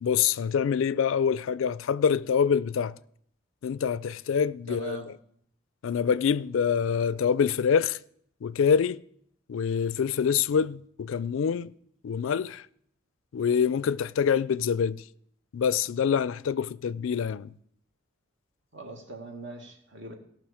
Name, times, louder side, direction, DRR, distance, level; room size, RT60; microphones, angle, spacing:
voice 1, 0.0-2.9 3.6-5.1 5.8-8.0 8.4-9.0 9.5-11.7 12.0-12.6 13.3-15.0 15.5-17.5, left 7 dB, 70° left, 0.3 m, -25 dB
voice 2, 4.7-5.1 18.7-20.2, right 3 dB, 60° right, 1.7 m, -41 dB
17.5 x 6.0 x 4.9 m
head